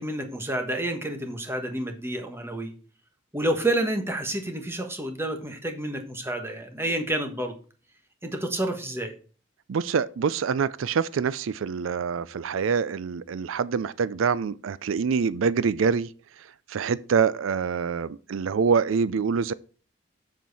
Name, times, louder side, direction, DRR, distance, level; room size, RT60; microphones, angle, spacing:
voice 1, 0.0-2.7 3.3-7.5 8.2-9.1, right 1 dB, 10° right, 1.3 m, -29 dB
voice 2, 9.7-16.1 16.4-19.5, right 6 dB, 85° right, 0.4 m, -25 dB
7.5 x 7.3 x 4.1 m
head